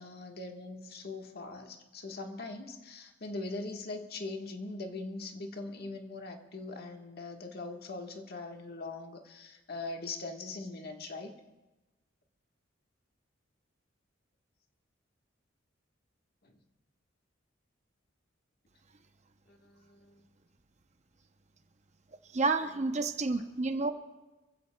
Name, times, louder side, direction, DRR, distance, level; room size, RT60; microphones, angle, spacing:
voice 1, 0.0-11.4 16.4-16.6 19.5-20.2, left 3 dB, 50° left, 3 dB, 1.5 m, -41 dB
voice 2, 22.3-23.9, right 3 dB, 35° right, 8 dB, 0.7 m, -30 dB
26.5 x 16.0 x 2.3 m, 1.1 s
head